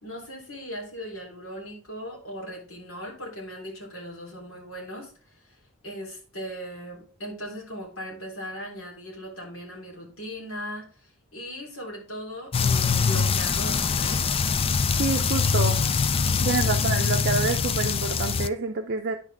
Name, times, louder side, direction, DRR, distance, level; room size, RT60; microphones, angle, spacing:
voice 1, 0.0-14.2, equal, 80° left, -2 dB, 3.3 m, -38 dB
sound 1, 12.5-18.5, left 5 dB, 25° left, 0.3 m, -23 dB
voice 2, 15.0-15.8 16.4-19.2, right 4 dB, 50° right, 3 dB, 0.6 m, -27 dB
9.6 x 6.1 x 3.4 m, 0.40 s
head